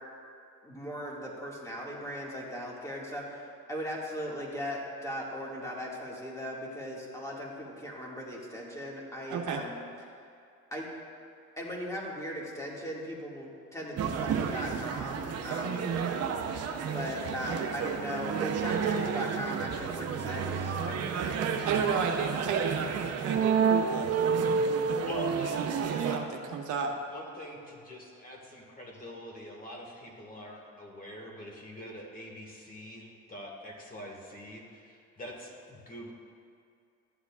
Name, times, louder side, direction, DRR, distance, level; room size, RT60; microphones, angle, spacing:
voice 1, 0.6-10.1 10.7-10.9 11.6-15.8 16.8-21.4, equal, 10° left, -3 dB, 2.0 m, -38 dB
voice 2, 9.3-9.6 15.6-16.1 21.6-22.8 23.2-25.1 25.8-27.0, right 6 dB, 70° right, 2 dB, 0.9 m, -33 dB
sound 1, 14.0-26.2, right 6 dB, 50° right, 0.7 m, -30 dB
voice 3, 25.0-26.2 27.1-36.1, equal, 25° left, 0 dB, 1.7 m, -44 dB
12.5 x 8.0 x 2.4 m, 2.5 s
cardioid pair, 90°, 32 cm